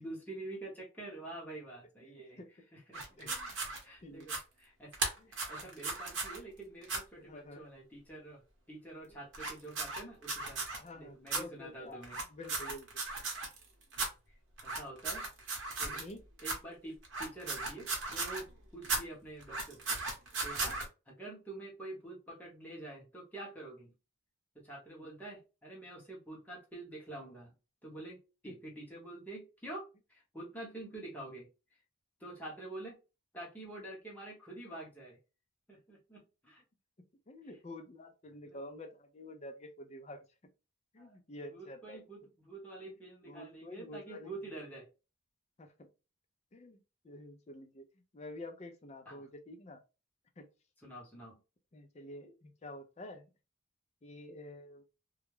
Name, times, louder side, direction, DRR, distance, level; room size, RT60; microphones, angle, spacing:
voice 1, 0.0-2.4 2.7-5.0 5.3-8.4 8.7-10.6 10.9-12.2 14.3-14.4 14.6-15.3 15.8-16.1 16.4-20.0 20.4-20.8 21.1-23.9 24.5-27.5 27.8-31.5 32.2-33.0 33.3-35.2 35.7-36.6 38.4-38.6 41.0-41.2 41.5-44.9 49.1-49.3 50.8-51.3, right 2 dB, 10° left, 0.8 m, -47 dB
voice 2, 2.0-2.5 3.2-3.5 4.0-4.3 5.2-5.3 5.6-5.7 7.1-7.6 9.1-9.2 10.7-12.9 15.9-16.2 28.5-28.6 37.3-40.2 40.9-42.0 43.3-44.3 45.6-45.9 46.5-46.8 47.0-47.9 48.1-49.8 50.4-50.5 51.7-53.3 54.0-54.8, left 1 dB, 30° left, 0.4 m, -49 dB
sound 1, 2.9-3.8 4.2-4.4 4.9-6.4 6.8-7.0 9.3-10.8 11.3-11.4 12.0-13.6 13.9-14.1 14.6-16.1 16.4-16.6 17.0-18.5 18.8-19.0 19.4-20.8, right 3 dB, 60° right, 0.9 m, -36 dB
2.3 x 2.0 x 3.0 m
head